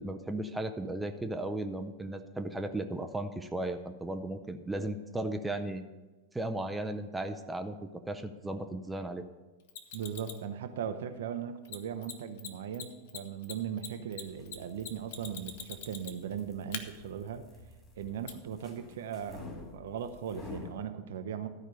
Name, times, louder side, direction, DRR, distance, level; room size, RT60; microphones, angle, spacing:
voice 1, 0.0-5.8 6.3-9.2, right 1 dB, 5° right, 7 dB, 0.6 m, -36 dB
Mechanisms, 9.7-10.4 11.6-11.8 12.0-12.1 12.4-12.5 12.7-16.3 16.7-16.8 18.3-18.4, left 8 dB, 50° left, 0.9 m, -42 dB
voice 2, 9.9-17.5 17.9-21.5, right 8 dB, 60° right, 9 dB, 0.7 m, -38 dB
sound 1, 14.1-20.8, left 3 dB, 20° left, 2.5 m, -50 dB
13.0 x 4.9 x 6.7 m, 1.2 s
figure-of-eight pair, 90°, 0 cm